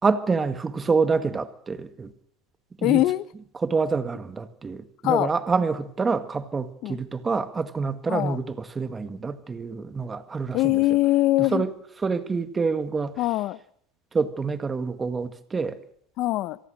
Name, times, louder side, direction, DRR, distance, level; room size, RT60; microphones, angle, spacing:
voice 1, 0.0-2.1 2.8-3.0 3.5-10.8 11.4-11.7 12.0-13.2 14.1-15.8, right 4 dB, 20° right, 1.9 m, -27 dB
voice 2, 2.8-3.2 5.0-5.3 6.8-7.0 8.1-8.4 10.5-11.6 13.2-13.6 16.2-16.6, left 17 dB, 55° left, 1.0 m, -22 dB
26.5 x 18.5 x 6.6 m
supercardioid pair, 120°, 0 cm